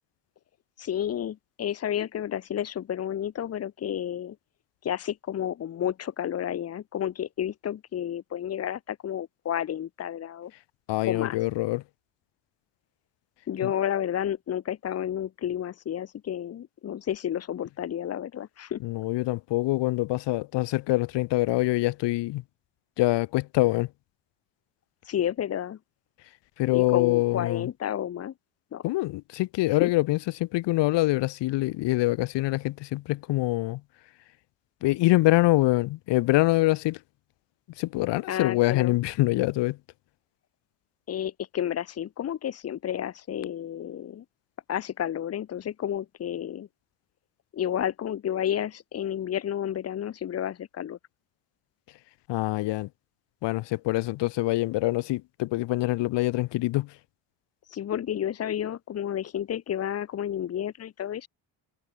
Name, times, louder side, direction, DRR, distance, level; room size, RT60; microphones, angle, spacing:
voice 1, 0.8-4.4 4.8-10.5 11.0-11.4 13.5-18.8 25.0-25.8 26.7-28.3 28.7-28.8 29.8-29.9 38.3-38.9 41.1-44.2 44.7-46.7 47.5-51.0 57.7-61.3, left 10 dB, 35° left, 1.4 m, -31 dB
voice 2, 10.9-11.8 13.6-13.7 18.8-22.4 23.0-23.9 26.6-27.7 28.8-33.8 34.8-37.0 37.8-39.8 52.3-52.9 53.4-56.9, left 19 dB, 80° left, 1.2 m, -25 dB
cardioid pair, 180°, 42 cm